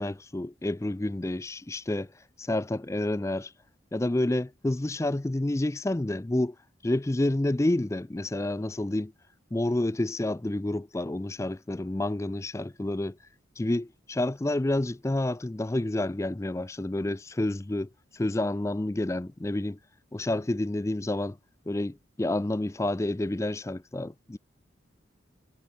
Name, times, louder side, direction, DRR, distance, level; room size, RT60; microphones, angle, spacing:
voice 1, 0.0-2.1 2.4-3.5 3.9-6.6 6.8-9.1 9.5-13.2 13.6-19.8 20.1-21.4 21.7-24.4, left 1 dB, 15° left, 0.4 m, -29 dB
head